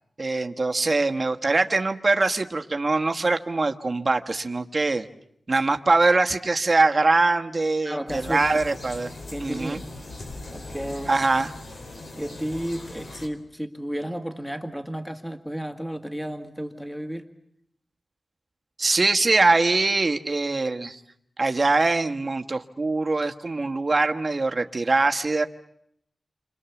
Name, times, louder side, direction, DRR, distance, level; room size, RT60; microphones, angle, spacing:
voice 1, 0.2-5.1 5.5-9.1 9.4-9.8 11.1-11.5 18.8-21.0 21.4-25.5, right 3 dB, 35° right, 5 dB, 1.3 m, -23 dB
voice 2, 7.8-8.6 9.3-9.9 10.5-11.1 12.2-17.3, equal, 5° left, 6 dB, 1.8 m, -32 dB
sound 1, 8.1-13.3, left 2 dB, 70° left, 4.3 m, -40 dB
29.5 x 26.0 x 7.1 m, 0.73 s
wide cardioid pair, 125°, 0 cm